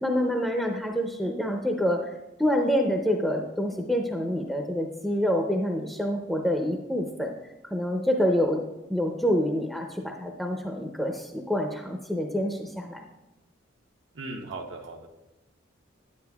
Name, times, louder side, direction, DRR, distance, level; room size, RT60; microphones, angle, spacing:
voice 1, 0.0-2.1 2.4-7.3 7.7-8.6 8.9-13.0, equal, ahead, 2 dB, 0.5 m, -27 dB
voice 2, 14.1-15.1, right 2 dB, 80° right, 1 dB, 0.9 m, -37 dB
9.6 x 9.5 x 2.3 m, 0.98 s
head